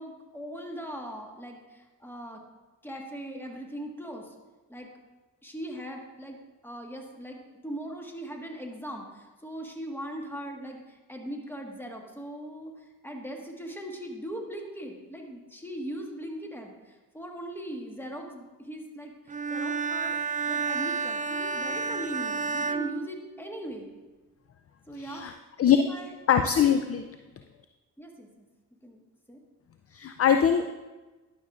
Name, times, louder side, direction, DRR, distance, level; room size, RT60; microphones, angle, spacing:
voice 1, 0.0-2.4 2.8-4.3 4.7-4.9 5.4-6.4 6.6-20.2 20.5-23.9 24.9-25.2 25.7-26.2 28.0-28.4 28.8-29.0 29.3-29.4, right 1 dB, 5° left, 1 dB, 1.6 m, -40 dB
Bowed string instrument, 19.3-23.8, right 5 dB, 20° right, 0.4 m, -31 dB
voice 2, 24.9-25.3 25.6-25.8 26.3-27.1 29.9-30.7, left 8 dB, 40° left, 8 dB, 0.5 m, -22 dB
11.5 x 6.4 x 2.5 m, 1.2 s
supercardioid pair, 50°, 37 cm